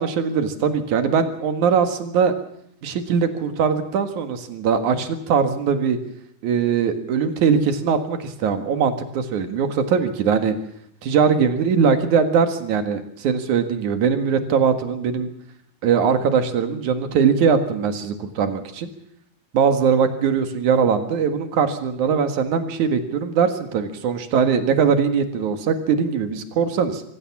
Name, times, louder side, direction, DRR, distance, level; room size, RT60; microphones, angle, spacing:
voice 1, 0.0-2.3 2.8-6.0 6.4-10.5 11.0-15.3 15.8-18.9 19.5-27.0, right 6 dB, 90° right, 8 dB, 3.2 m, -21 dB
25.5 x 16.0 x 7.3 m, 0.72 s
omnidirectional pair, 3.3 m